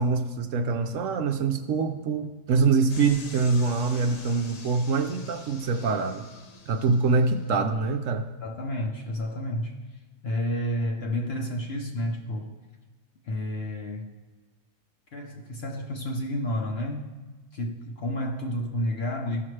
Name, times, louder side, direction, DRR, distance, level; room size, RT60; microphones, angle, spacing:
voice 1, 0.0-6.3 6.7-8.3, right 4 dB, 65° right, 7 dB, 0.8 m, -24 dB
sound 1, 2.9-7.5, left 4 dB, 65° left, 0.3 m, -46 dB
voice 2, 8.4-12.5 13.2-14.1 15.1-17.2 17.5-19.4, equal, 50° left, 2 dB, 0.8 m, -31 dB
15.5 x 5.8 x 3.2 m, 1.3 s
omnidirectional pair, 1.7 m